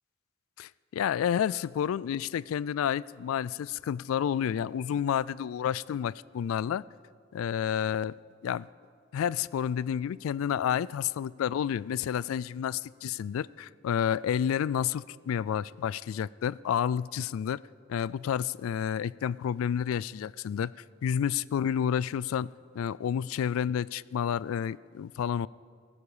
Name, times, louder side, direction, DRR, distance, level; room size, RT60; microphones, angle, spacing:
voice 1, 0.6-6.8 7.3-8.1 8.4-8.7 9.1-17.6 17.9-20.7 21.0-25.5, left 8 dB, 90° left, 0.3 m, -30 dB
17.0 x 15.0 x 4.9 m
head